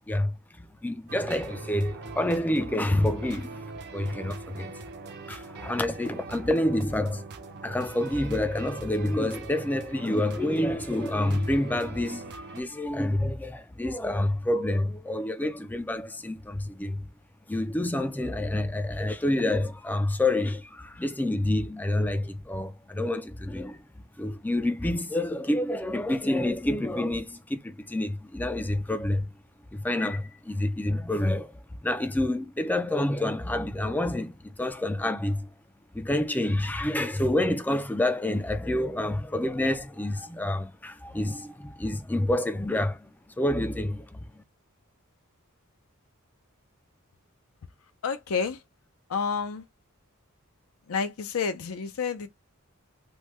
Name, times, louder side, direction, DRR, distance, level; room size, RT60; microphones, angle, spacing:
voice 1, 0.1-3.6 3.9-4.7 5.3-7.2 7.6-17.0 17.5-23.8 24.2-29.3 29.7-31.5 31.8-35.5 35.9-43.1 43.4-44.4, left 1 dB, 10° left, 0.3 m, -28 dB
sound 1, 1.1-12.6, right 3 dB, 50° right, 0.5 m, -41 dB
voice 2, 48.0-48.6 49.1-49.7 50.9-52.3, left 5 dB, 70° left, 0.5 m, -29 dB
3.2 x 2.2 x 3.0 m
head